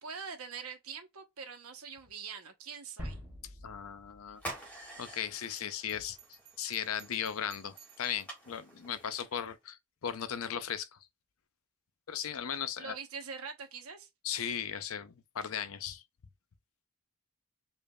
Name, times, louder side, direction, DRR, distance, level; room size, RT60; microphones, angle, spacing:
voice 1, 0.0-3.2 12.8-14.1, right 5 dB, 80° right, 1.0 m, -43 dB
sound 1, 3.0-5.5, equal, 10° right, 2.1 m, -46 dB
voice 2, 3.6-4.4 5.0-11.0 12.1-13.0 14.2-16.0, left 8 dB, 70° left, 0.5 m, -37 dB
sound 2, 4.3-9.5, right 2 dB, 5° left, 1.6 m, -48 dB
Bell, 5.4-8.4, right 10 dB, 65° right, 1.4 m, -58 dB
5.1 x 2.5 x 2.3 m
head